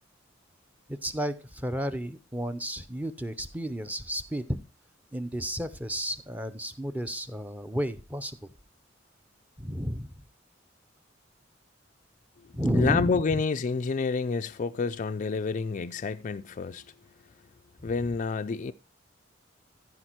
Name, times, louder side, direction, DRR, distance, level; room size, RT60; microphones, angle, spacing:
voice 1, 0.9-4.6 5.1-8.5 9.6-10.1 12.5-13.4 17.8-17.9, equal, 10° right, 0.7 m, -32 dB
voice 2, 12.7-16.8 17.8-18.7, left 4 dB, 40° left, 0.4 m, -28 dB
14.0 x 5.1 x 4.6 m
head